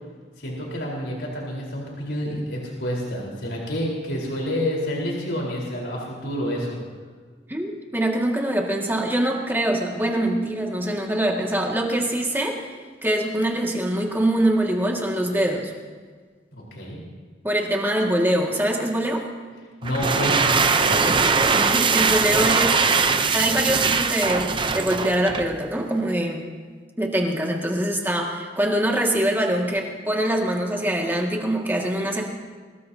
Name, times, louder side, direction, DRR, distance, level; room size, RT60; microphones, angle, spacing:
voice 1, 0.4-6.8 16.7-17.0 19.8-21.3, equal, 70° left, -3 dB, 4.3 m, -28 dB
voice 2, 7.5-12.7 13.0-15.7 17.4-19.3 21.5-22.8 23.3-26.4 27.0-32.2, right 1 dB, 10° right, -1 dB, 2.0 m, -24 dB
sound 1, 19.8-25.6, right 5 dB, 25° right, 0.7 m, -21 dB
24.0 x 20.0 x 2.9 m, 1.5 s
head